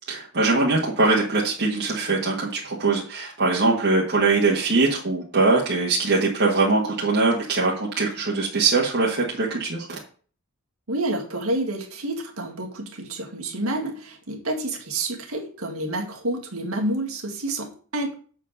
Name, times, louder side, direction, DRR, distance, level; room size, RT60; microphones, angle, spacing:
voice 1, 0.1-9.8, right 3 dB, 50° right, -4 dB, 1.5 m, -22 dB
voice 2, 10.9-18.1, right 1 dB, 90° right, 1 dB, 1.9 m, -29 dB
7.3 x 4.7 x 6.5 m, 0.43 s
head